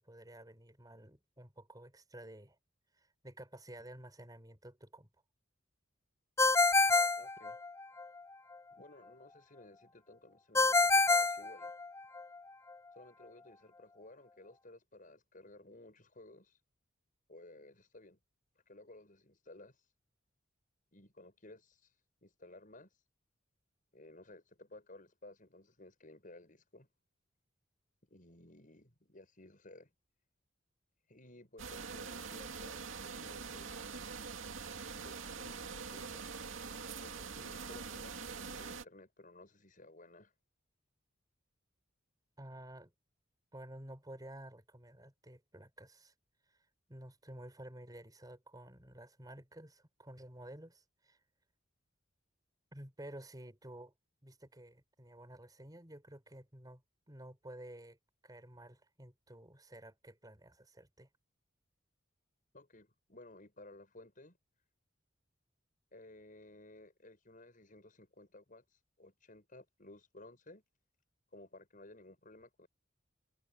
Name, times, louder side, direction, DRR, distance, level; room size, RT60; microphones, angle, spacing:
voice 1, 0.0-2.6 2.9-5.1 42.4-42.9 43.5-46.1 46.5-51.2 52.7-53.9 54.2-56.8 57.1-58.0 58.2-61.1, right 1 dB, 20° right, 4.6 m, -52 dB
Ringtone, 6.4-8.1 10.6-12.2, left 3 dB, 15° left, 0.6 m, -27 dB
voice 2, 7.2-7.6 8.7-11.7 12.9-16.6 17.3-18.2 18.7-19.8 20.9-21.9 22.2-22.9 23.9-26.9 28.1-29.9 31.1-33.9 34.9-36.3 37.0-40.3 62.5-64.4 65.9-68.6 69.0-70.6 71.3-72.7, left 2 dB, 45° left, 7.2 m, -56 dB
sound 1, 31.6-38.8, right 5 dB, 90° right, 2.3 m, -44 dB
head